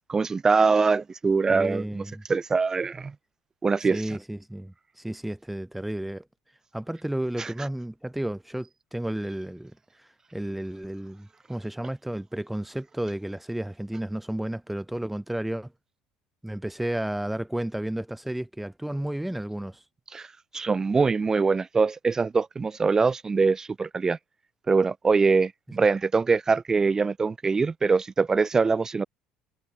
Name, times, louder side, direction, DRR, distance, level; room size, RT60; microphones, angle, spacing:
voice 1, 0.1-2.0 2.3-3.1 3.6-4.0 7.4-7.5 20.1-20.3 20.5-24.2 24.7-29.0, right 4 dB, 25° right, 5.0 m, -23 dB
voice 2, 1.5-2.2 3.9-6.3 6.7-15.7 16.4-19.8, right 1 dB, 5° right, 6.1 m, -32 dB
hypercardioid pair, 70°, 2 cm